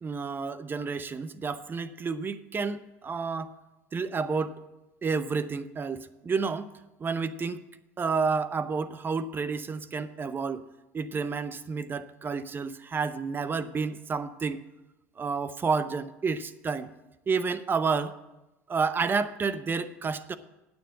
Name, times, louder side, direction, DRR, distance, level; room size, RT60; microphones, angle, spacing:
voice 1, 0.0-3.5 3.9-4.6 5.0-6.7 7.0-7.6 8.0-10.6 10.9-14.6 15.2-16.9 17.3-18.2 18.7-20.4, right 5 dB, 30° right, 13 dB, 0.7 m, -30 dB
9.1 x 7.1 x 8.6 m, 1.0 s
hypercardioid pair, 80°, 7 cm